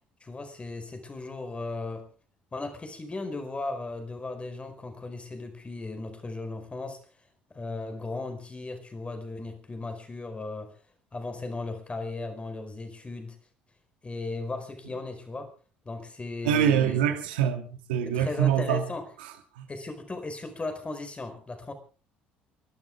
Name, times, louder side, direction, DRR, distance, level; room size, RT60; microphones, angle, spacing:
voice 1, 0.2-2.1 2.5-7.0 7.5-10.8 11.1-13.4 14.0-15.5 15.8-17.0 18.0-19.0 19.7-21.7, left 2 dB, 25° left, 4.8 m, -36 dB
voice 2, 16.4-18.9 19.6-19.7, right 9 dB, 80° right, 2.6 m, -25 dB
28.5 x 12.5 x 3.7 m
hypercardioid pair, 60°, 5 cm